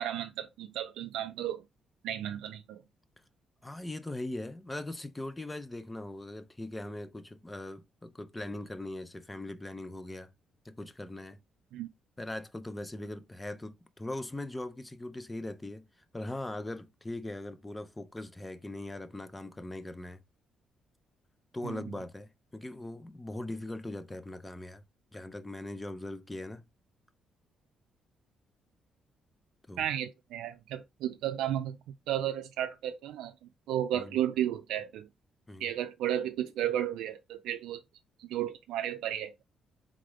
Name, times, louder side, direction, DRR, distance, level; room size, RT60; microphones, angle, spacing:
voice 1, 0.0-1.6 2.0-2.8 11.7-11.9 21.6-21.8 29.8-31.8 32.1-35.1 35.6-37.8 38.2-39.3, right 11 dB, 90° right, 0.3 m, -33 dB
voice 2, 3.6-10.3 10.6-11.4 12.2-15.9 16.1-20.2 21.5-24.8 25.1-26.7 29.7-29.8 33.9-34.1 35.5-35.7, left 1 dB, 15° left, 0.6 m, -40 dB
3.7 x 3.7 x 3.3 m
cardioid pair, 90°, 0 cm